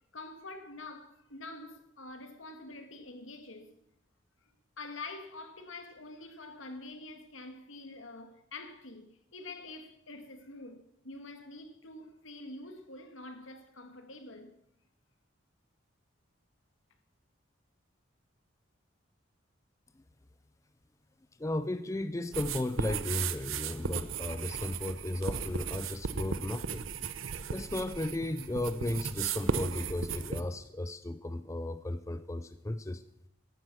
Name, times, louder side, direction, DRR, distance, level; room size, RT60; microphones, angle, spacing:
voice 1, 0.1-3.8 4.8-14.5, left 2 dB, 80° left, 2.1 m, -46 dB
voice 2, 21.4-26.9 27.5-33.0, left 1 dB, 15° left, 0.4 m, -35 dB
sound 1, 22.3-30.4, right 6 dB, 85° right, 0.8 m, -36 dB
14.0 x 11.5 x 6.2 m
head